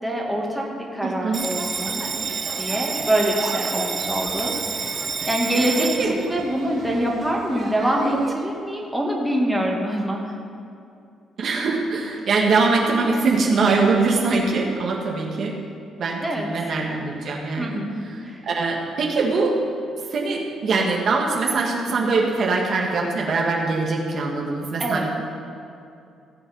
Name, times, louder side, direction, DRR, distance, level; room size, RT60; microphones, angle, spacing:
voice 1, 0.0-2.1 2.6-5.0 5.3-10.3 11.9-12.0 16.2-16.5 17.6-18.5 21.9-22.2 24.8-25.1, right 1 dB, 5° right, -2 dB, 2.4 m, -25 dB
voice 2, 1.0-1.4 5.8-6.1 11.4-15.5 16.0-17.8 18.4-19.6 20.1-25.1, right 3 dB, 60° right, -1 dB, 1.9 m, -22 dB
Bell, 1.3-8.3, right 5 dB, 40° right, 0.8 m, -29 dB
17.5 x 7.1 x 5.6 m, 2.6 s
cardioid pair, 90°, 0 cm